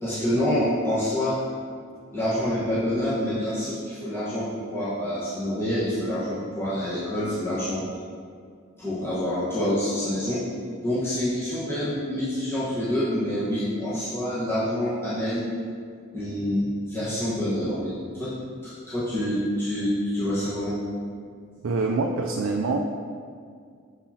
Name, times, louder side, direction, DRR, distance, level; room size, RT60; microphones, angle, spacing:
voice 1, 0.0-1.4 2.1-7.8 8.8-10.4 10.8-15.5 16.1-18.4 18.6-20.8, left 1 dB, 10° left, -12 dB, 1.2 m, -27 dB
voice 2, 21.6-22.8, right 3 dB, 85° right, 1 dB, 0.4 m, -25 dB
7.0 x 5.5 x 2.8 m, 2.1 s
head